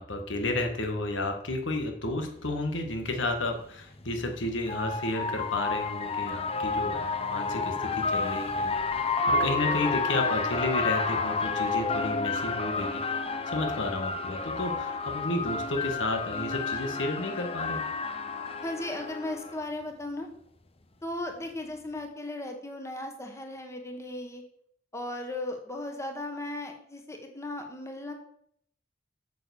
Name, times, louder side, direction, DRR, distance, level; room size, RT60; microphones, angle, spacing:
voice 1, 0.0-13.0 13.5-17.8, left 2 dB, 85° left, 4 dB, 1.8 m, -32 dB
sound 1, 2.5-2.6 4.0-19.6, left 4 dB, 30° left, 0.8 m, -30 dB
voice 2, 18.6-20.3 21.0-24.4 24.9-28.1, left 1 dB, 15° left, 4 dB, 1.5 m, -36 dB
9.1 x 7.1 x 7.1 m, 0.70 s
head